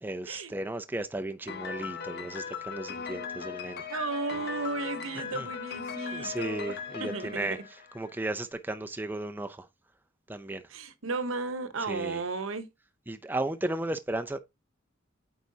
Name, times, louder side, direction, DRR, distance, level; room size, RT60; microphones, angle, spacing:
voice 1, 0.0-3.8 5.3-5.5 6.1-7.6 7.9-9.7 10.3-10.6 11.9-12.2 13.1-14.4, right 2 dB, 10° right, 0.4 m, -34 dB
Piano, 1.5-8.3, left 6 dB, 55° left, 0.9 m, -39 dB
voice 2, 3.9-7.7 10.7-12.7, right 3 dB, 80° right, 0.9 m, -34 dB
8.4 x 4.7 x 2.7 m
head